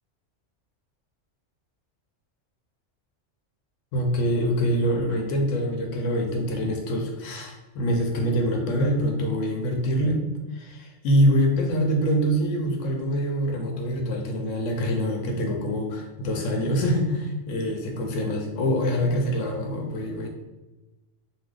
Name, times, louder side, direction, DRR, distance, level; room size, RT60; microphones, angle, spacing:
voice 1, 3.9-10.2 10.5-20.3, equal, 80° left, 2 dB, 1.0 m, -25 dB
2.7 x 2.1 x 3.6 m, 1.1 s
omnidirectional pair, 1.3 m